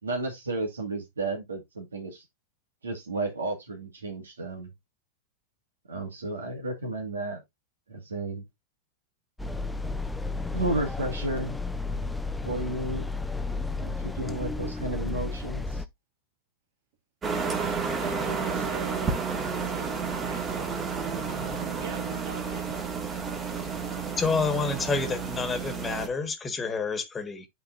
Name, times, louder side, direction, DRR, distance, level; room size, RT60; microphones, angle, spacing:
voice 1, 0.0-2.2 2.8-4.7 5.9-7.4 7.9-8.4 10.5-11.6 12.4-13.1 13.7-15.8, right 2 dB, 85° right, 2.0 m, -32 dB
sound 1, 9.4-15.9, left 3 dB, 5° left, 0.6 m, -32 dB
sound 2, 17.2-26.1, right 5 dB, 25° right, 1.8 m, -31 dB
voice 2, 17.8-21.0 21.3-22.8, right 5 dB, 65° right, 2.0 m, -46 dB
voice 3, 24.2-27.5, left 4 dB, 20° left, 1.5 m, -28 dB
11.5 x 4.0 x 2.5 m
hypercardioid pair, 100°, 0 cm